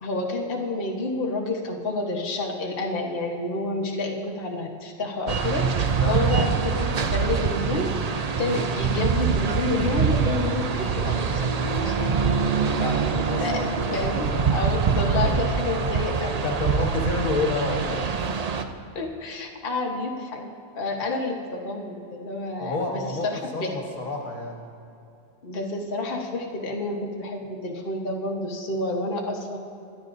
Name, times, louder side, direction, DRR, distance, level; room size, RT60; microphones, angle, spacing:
voice 1, 0.0-7.9 8.4-12.1 13.4-16.4 18.9-20.5 20.7-23.7 25.4-29.6, left 2 dB, 40° left, 0 dB, 1.4 m, -29 dB
sound 1, 5.3-18.6, right 6 dB, 85° right, 0.3 m, -24 dB
voice 2, 12.7-14.6 16.4-18.1 22.6-24.7, left 2 dB, 65° left, 1 dB, 1.7 m, -29 dB
22.0 x 11.5 x 2.7 m, 2.6 s
omnidirectional pair, 1.6 m